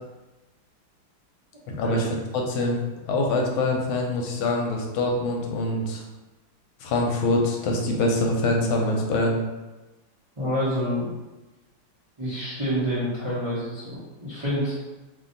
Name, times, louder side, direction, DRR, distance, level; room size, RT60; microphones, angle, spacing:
voice 1, 1.7-2.8 3.1-6.0 6.8-9.4, left 2 dB, 85° left, 0 dB, 1.4 m, -24 dB
voice 2, 10.4-11.1 12.2-14.7, equal, 45° right, -10 dB, 0.4 m, -27 dB
3.1 x 2.6 x 3.8 m, 1.1 s
omnidirectional pair, 2.2 m